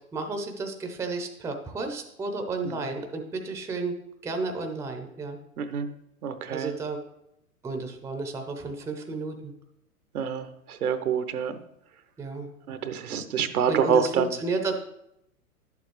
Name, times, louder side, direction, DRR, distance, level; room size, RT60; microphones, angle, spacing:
voice 1, 0.1-4.0 4.2-5.4 6.5-7.0 7.6-9.5 12.2-12.5 13.7-14.8, right 3 dB, 5° right, 5 dB, 0.6 m, -32 dB
voice 2, 5.6-5.9 6.2-6.7 10.1-11.6 12.7-14.3, right 7 dB, 75° right, 10 dB, 0.9 m, -27 dB
11.0 x 7.0 x 3.2 m, 0.80 s
hypercardioid pair, 110°, 44 cm